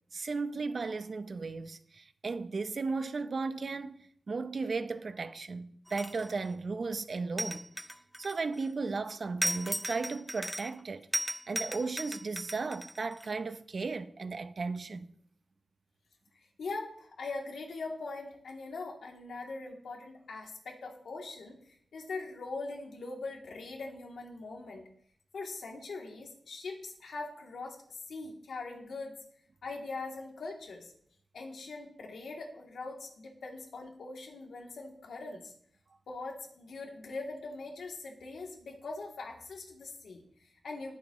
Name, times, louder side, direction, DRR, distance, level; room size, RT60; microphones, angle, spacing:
voice 1, 0.1-7.7 8.2-11.1 11.5-15.1, right 4 dB, 50° right, 0.7 m, -35 dB
sound 1, 5.9-6.5 7.4-8.7 9.4-10.8 11.1-13.3, equal, ahead, 0.6 m, -36 dB
voice 2, 16.6-24.8 25.3-29.1 29.6-30.9 31.3-35.5 36.1-41.0, left 3 dB, 85° left, 2.9 m, -42 dB
21.5 x 9.2 x 3.1 m
wide cardioid pair, 130°, 0 cm